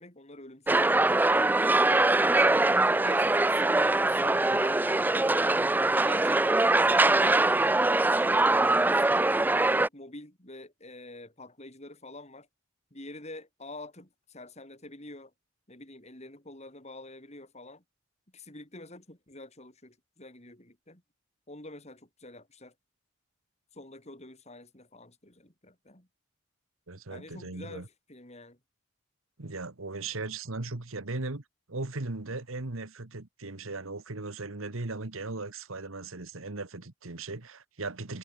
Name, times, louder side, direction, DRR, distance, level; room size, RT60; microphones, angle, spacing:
voice 1, 0.0-1.4 2.3-5.6 6.0-8.4 8.8-9.4 9.7-12.5 12.9-15.3 15.7-17.8 18.3-21.0 21.5-22.7 23.7-26.1 27.1-28.6, left 2 dB, 30° left, 5.1 m, -46 dB
sound 1, 0.7-9.9, right 2 dB, 10° right, 0.3 m, -23 dB
voice 2, 26.9-27.9 29.4-31.4 31.7-38.2, right 3 dB, 80° right, 1.6 m, -37 dB
head